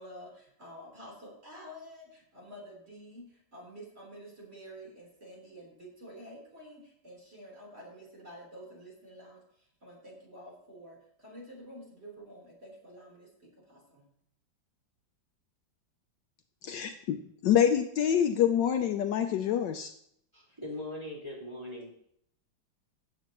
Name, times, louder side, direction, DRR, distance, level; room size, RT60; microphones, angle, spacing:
voice 1, 0.0-14.1, equal, 30° right, -4 dB, 3.9 m, -49 dB
voice 2, 16.6-17.2 17.4-19.9, left 9 dB, 70° left, 7 dB, 1.2 m, -26 dB
voice 3, 20.3-21.9, left 1 dB, 15° right, -6 dB, 4.0 m, -40 dB
16.0 x 7.7 x 3.0 m, 0.70 s
omnidirectional pair, 2.1 m